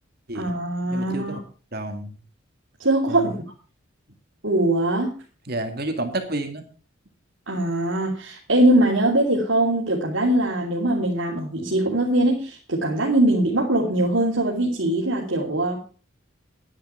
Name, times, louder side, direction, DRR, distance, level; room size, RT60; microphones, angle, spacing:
voice 1, 0.3-1.4 2.8-3.3 4.4-5.1 7.5-15.8, right 1 dB, 75° right, -3 dB, 3.0 m, -21 dB
voice 2, 0.9-1.4 1.7-2.2 3.1-3.4 5.5-6.6, right 1 dB, 50° right, 5 dB, 2.1 m, -30 dB
11.0 x 10.5 x 5.6 m, 0.38 s
head